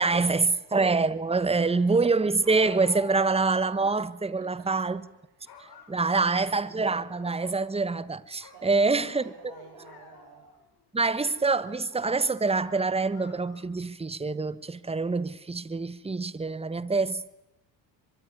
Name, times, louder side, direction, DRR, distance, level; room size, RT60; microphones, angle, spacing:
voice 1, 0.0-5.0 5.9-9.2 10.9-17.3, right 3 dB, 15° right, 1.3 m, -25 dB
voice 2, 1.4-1.9 4.4-4.9 5.3-6.5 8.5-10.5, right 7 dB, 75° right, 4.7 m, -51 dB
sound 1, 2.4-3.5 3.9-4.0 4.9-5.1 5.5-6.5 6.9-8.1 8.4-10.6 11.2-12.0 12.5-13.8, left 6 dB, 65° left, 5.8 m, -52 dB
24.0 x 22.0 x 9.5 m
supercardioid pair, 75°, 41 cm